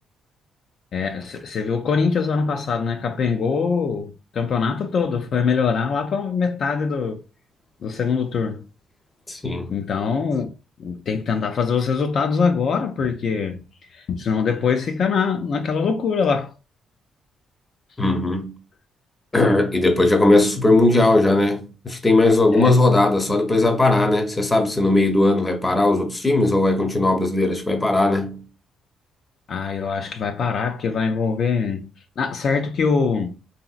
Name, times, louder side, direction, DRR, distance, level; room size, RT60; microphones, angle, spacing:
voice 1, 0.9-7.2 7.8-8.6 9.7-10.5 10.8-13.6 13.9-16.5 22.5-22.7 29.5-31.9 32.2-33.3, left 5 dB, 60° left, 0.4 m, -23 dB
voice 2, 9.3-9.7 18.0-18.5 19.3-28.4, left 2 dB, 20° left, 0.7 m, -18 dB
2.9 x 2.7 x 2.4 m
cardioid pair, 90°, 0 cm